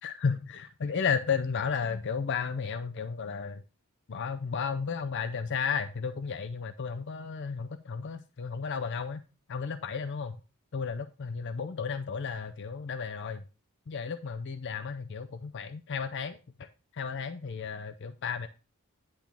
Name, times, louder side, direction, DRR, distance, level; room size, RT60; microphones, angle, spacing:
voice 1, 0.0-3.6 4.1-9.2 9.5-10.4 10.7-13.4 13.9-16.4 16.9-18.5, left 6 dB, 55° left, 9 dB, 0.5 m, -33 dB
10.5 x 3.5 x 6.0 m, 0.33 s
head